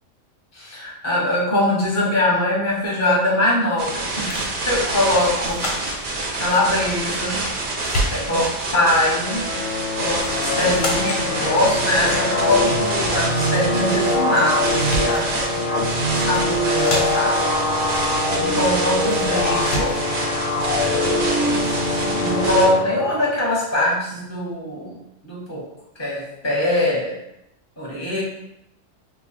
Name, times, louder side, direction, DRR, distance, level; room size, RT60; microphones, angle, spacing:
voice 1, 0.6-5.6 6.3-7.4 8.1-8.5 8.7-9.4 9.9-14.7 15.0-15.8 16.1-17.3 17.9-19.9 20.8-25.0 25.2-25.6 26.0-27.1 27.8-28.2, left 1 dB, 15° left, -6 dB, 0.8 m, -22 dB
sound 1, 3.8-22.7, right 2 dB, 55° right, 0.6 m, -27 dB
sound 2, 4.3-4.6 5.4-6.1 7.1-7.6 7.8-8.5 10.2-10.4 10.7-11.3 14.3-14.4 14.7-15.3 16.2-16.5 16.8-17.4 19.1-19.3 19.6-20.1, left 1 dB, 85° left, 1.1 m, -28 dB
sound 3, 9.2-23.3, left 2 dB, 65° left, 0.9 m, -23 dB
2.3 x 2.3 x 3.9 m, 0.85 s
omnidirectional pair, 1.3 m